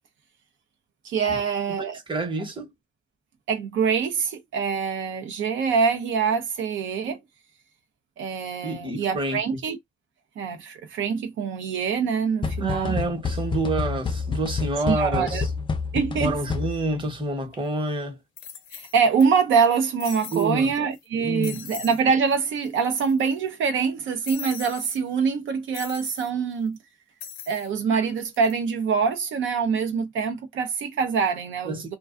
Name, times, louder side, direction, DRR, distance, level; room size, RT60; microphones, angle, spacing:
voice 1, 1.0-2.0 3.5-7.2 8.2-9.8 10.4-12.9 14.8-15.4 15.9-16.4 18.7-26.8 27.5-32.0, right 6 dB, 75° right, 0.6 m, -24 dB
voice 2, 1.7-2.7 8.6-9.6 12.6-15.5 16.2-18.2 20.3-20.7 21.2-21.6 31.6-32.0, right 2 dB, 25° right, 1.0 m, -28 dB
sound 1, 12.4-17.0, left 4 dB, 25° left, 0.4 m, -29 dB
sound 2, 17.5-17.6 18.4-19.2 19.5-19.6 20.0-20.5 20.9-21.1 21.4-22.0 22.3-22.4 22.6-23.3 24.2-25.0 25.7-26.3 27.2-27.7 28.2-28.5, left 8 dB, 80° left, 0.6 m, -40 dB
2.3 x 2.3 x 2.4 m
cardioid pair, 90°, 20 cm